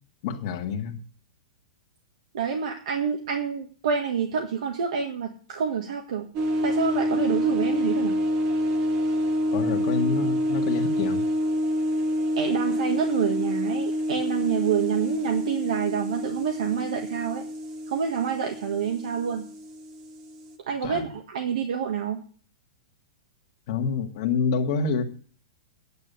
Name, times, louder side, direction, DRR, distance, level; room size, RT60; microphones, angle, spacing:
voice 1, 0.2-1.0 9.5-11.2 20.8-21.1 23.7-25.0, left 5 dB, 35° left, 4 dB, 1.8 m, -27 dB
voice 2, 2.3-6.3 6.6-8.2 12.4-17.4 17.9-19.5 20.7-22.2, right 7 dB, 60° right, 3 dB, 1.7 m, -27 dB
sound 1, 6.3-20.5, equal, 25° right, 1.2 m, -27 dB
9.7 x 9.4 x 6.9 m, 0.43 s
supercardioid pair, 180°, 4 cm